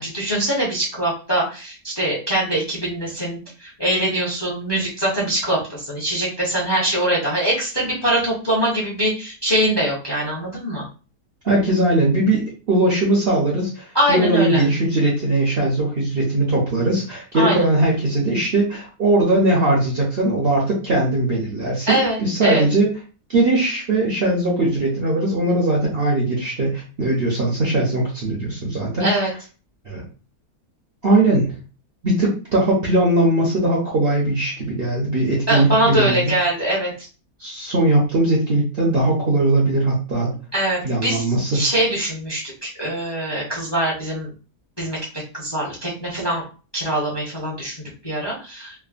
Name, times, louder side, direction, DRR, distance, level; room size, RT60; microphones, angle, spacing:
voice 1, 0.0-10.8 13.9-14.6 17.3-17.6 21.8-22.6 29.0-29.3 35.5-37.1 40.5-41.2 41.5-44.3 44.8-45.0 45.3-46.4 46.7-48.8, right 1 dB, 20° left, -5 dB, 0.7 m, -23 dB
voice 2, 11.4-22.9 23.3-29.1 29.8-30.0 31.0-31.5 32.0-36.3 37.4-40.3 40.8-41.6, right 2 dB, 50° right, -3 dB, 0.7 m, -20 dB
3.4 x 2.0 x 2.4 m, 0.35 s
omnidirectional pair, 1.7 m